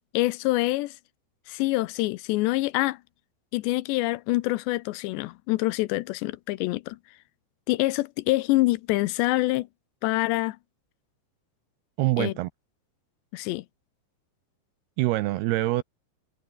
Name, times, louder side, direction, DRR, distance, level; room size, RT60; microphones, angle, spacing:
voice 1, 0.1-1.0 1.5-3.0 3.5-7.0 7.7-9.7 10.0-10.6 12.2-12.3 13.3-13.6, left 20 dB, 80° left, 2.8 m, -25 dB
voice 2, 12.0-12.5 15.0-15.8, right 18 dB, 80° right, 2.4 m, -24 dB
omnidirectional pair, 5.2 m